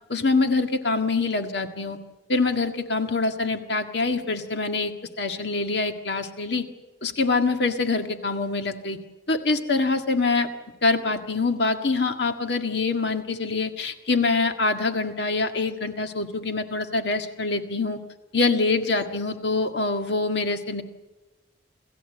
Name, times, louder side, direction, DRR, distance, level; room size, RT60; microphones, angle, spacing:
voice 1, 0.1-2.0 2.3-6.6 7.0-9.0 9.3-10.5 10.8-18.0 18.3-20.8, left 3 dB, 60° left, 6 dB, 1.8 m, -25 dB
27.5 x 14.5 x 7.9 m, 1.2 s
head